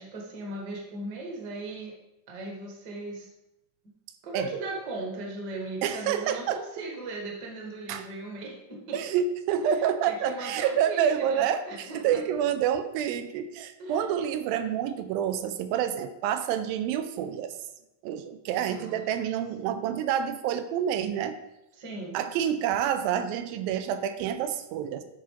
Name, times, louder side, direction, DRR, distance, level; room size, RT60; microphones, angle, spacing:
voice 1, 0.0-1.9 2.3-3.3 4.2-9.0 10.0-12.2 13.8-14.1 18.7-19.0 19.7-19.8 21.8-22.2, right 2 dB, 45° right, -1 dB, 1.3 m, -38 dB
voice 2, 5.8-6.6 7.9-8.1 8.9-17.5 18.0-21.4 22.1-25.0, right 9 dB, 90° right, 10 dB, 2.4 m, -28 dB
10.5 x 4.1 x 4.6 m, 0.93 s
omnidirectional pair, 4.1 m